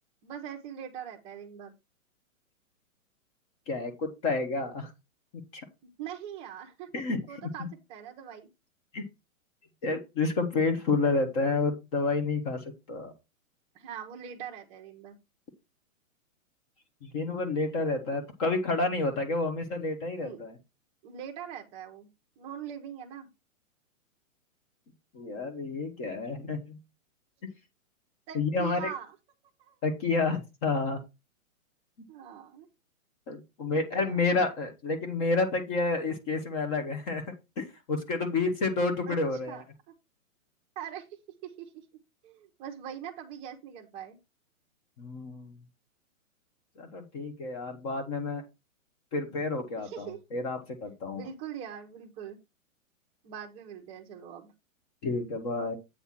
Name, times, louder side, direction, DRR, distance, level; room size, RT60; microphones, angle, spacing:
voice 1, 0.2-1.7 6.0-6.9 7.3-8.5 13.7-15.2 20.2-20.4 21.0-22.1 22.4-23.3 28.3-29.1 29.6-29.8 32.1-32.7 33.7-34.2 39.1-39.2 39.5-40.0 40.8-41.1 41.4-41.7 42.2-44.2 49.8-50.2 51.1-52.4 53.2-54.5, right 9 dB, 15° right, 2 dB, 0.8 m, -42 dB
voice 2, 3.7-4.9 5.3-5.7 6.9-7.2 7.6-7.7 8.9-9.0 9.8-13.1 17.0-20.6 25.1-26.8 28.3-28.9 29.8-31.0 33.3-37.2 37.6-39.6 45.0-45.6 46.8-48.4 49.1-51.2 55.0-55.8, left 3 dB, 25° left, 6 dB, 1.1 m, -30 dB
8.6 x 3.3 x 5.8 m, 0.24 s
hypercardioid pair, 160°, 41 cm